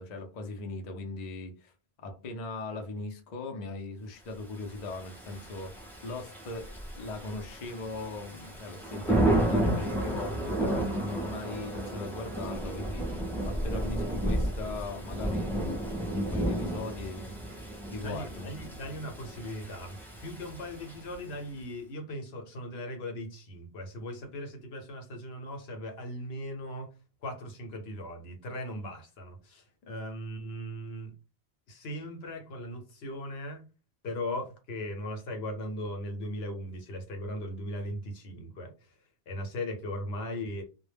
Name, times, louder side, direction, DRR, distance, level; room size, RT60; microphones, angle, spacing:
voice 1, 0.0-1.7 2.0-6.7 7.0-17.3 17.9-18.5 29.8-29.9, left 2 dB, 50° left, 0.6 m, -39 dB
Thunder / Rain, 4.7-21.3, right 1 dB, 5° left, 0.4 m, -32 dB
voice 2, 18.0-26.9 27.2-31.1 31.7-33.7 34.0-38.7 39.3-40.6, left 1 dB, 75° left, 0.9 m, -38 dB
2.2 x 2.0 x 3.2 m
omnidirectional pair, 1.1 m